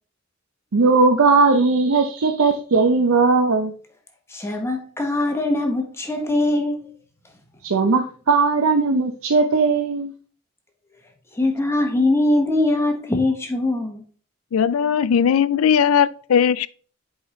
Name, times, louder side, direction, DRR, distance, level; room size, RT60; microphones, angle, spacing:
voice 1, 0.7-3.7 7.6-10.1, right 4 dB, 85° right, 0.6 m, -18 dB
voice 2, 4.3-6.9 11.3-14.0, left 2 dB, 10° left, 1.0 m, -22 dB
voice 3, 14.5-16.7, left 7 dB, 90° left, 0.4 m, -18 dB
7.9 x 4.9 x 3.1 m
head